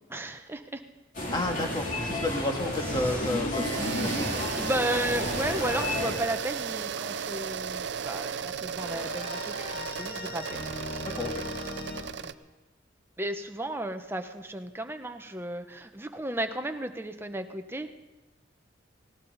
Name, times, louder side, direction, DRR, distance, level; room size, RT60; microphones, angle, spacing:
voice 1, 0.1-0.8 3.0-3.3 4.6-10.6 11.1-11.3 12.2-12.3 13.2-17.9, right 1 dB, 15° right, 6 dB, 0.8 m, -34 dB
sound 1, 1.1-6.1, left 1 dB, 45° left, 2.9 m, -32 dB
voice 2, 1.3-4.4 11.2-11.5, left 1 dB, 25° left, 3 dB, 1.7 m, -31 dB
sound 2, 3.5-12.3, right 7 dB, 65° right, 0.5 m, -35 dB
sound 3, 8.8-12.0, left 2 dB, 60° left, 5.9 m, -39 dB
18.0 x 17.0 x 4.0 m, 1.1 s
head